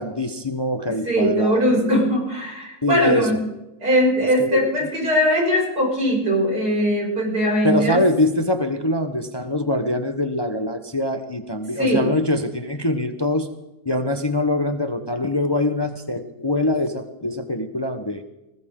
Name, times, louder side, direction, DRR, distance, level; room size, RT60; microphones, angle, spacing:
voice 1, 0.0-2.0 2.8-3.3 4.4-4.6 7.6-13.5 13.8-18.2, left 1 dB, 20° left, 7 dB, 0.9 m, -23 dB
voice 2, 0.9-3.4 3.8-8.0 11.8-12.1, equal, 90° right, -2 dB, 6.9 m, -20 dB
19.5 x 19.5 x 3.8 m, 0.93 s
omnidirectional pair, 1.6 m